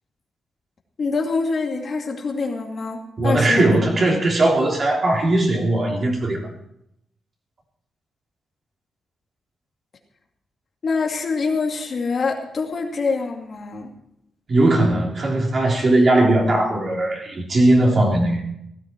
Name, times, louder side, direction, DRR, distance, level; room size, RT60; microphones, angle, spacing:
voice 1, 1.0-3.7 10.8-13.9, left 4 dB, 50° left, 2 dB, 2.3 m, -25 dB
voice 2, 3.2-6.4 14.5-18.4, right 2 dB, 40° right, -1 dB, 3.6 m, -18 dB
17.0 x 12.5 x 4.6 m, 0.78 s
cardioid pair, 120°, 0 cm